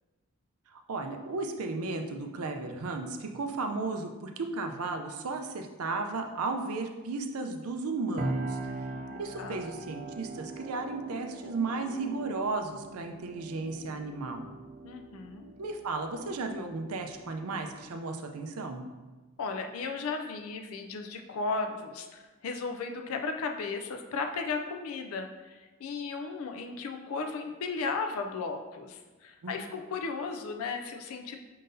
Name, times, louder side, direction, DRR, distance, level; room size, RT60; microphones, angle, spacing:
voice 1, 0.7-8.7 9.2-14.5 15.4-18.9 29.4-29.6, right 3 dB, 90° right, 4 dB, 0.5 m, -34 dB
sound 1, 8.2-17.9, right 2 dB, 40° right, 0.3 m, -41 dB
voice 2, 8.8-9.6 14.8-15.5 19.4-31.4, left 4 dB, 75° left, 5 dB, 0.4 m, -35 dB
5.3 x 3.8 x 2.6 m, 1.2 s
head